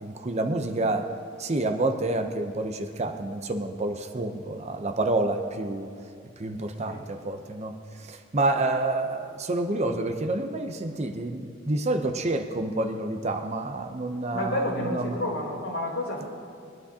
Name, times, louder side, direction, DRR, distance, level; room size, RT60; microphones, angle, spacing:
voice 1, 0.0-1.1 1.4-5.9 6.4-7.7 8.0-15.2, right 2 dB, 30° right, 6 dB, 0.7 m, -28 dB
voice 2, 14.3-16.3, left 1 dB, 75° left, -4 dB, 3.1 m, -30 dB
22.0 x 10.5 x 2.8 m, 2.5 s
head